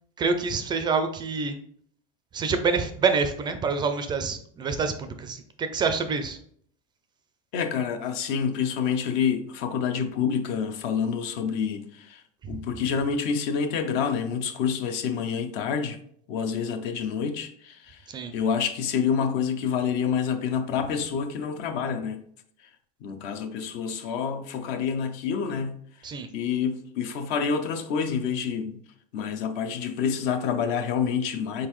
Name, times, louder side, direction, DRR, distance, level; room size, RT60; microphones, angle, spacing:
voice 1, 0.2-1.6 2.3-6.4 12.4-12.6 18.1-18.3 26.0-26.3, right 5 dB, 20° right, 0.4 m, -27 dB
voice 2, 7.5-16.0 16.3-22.2 23.0-25.8 26.3-28.8 29.1-31.7, left 7 dB, 55° left, 0.6 m, -28 dB
4.3 x 3.7 x 3.1 m
supercardioid pair, 135°, 20 cm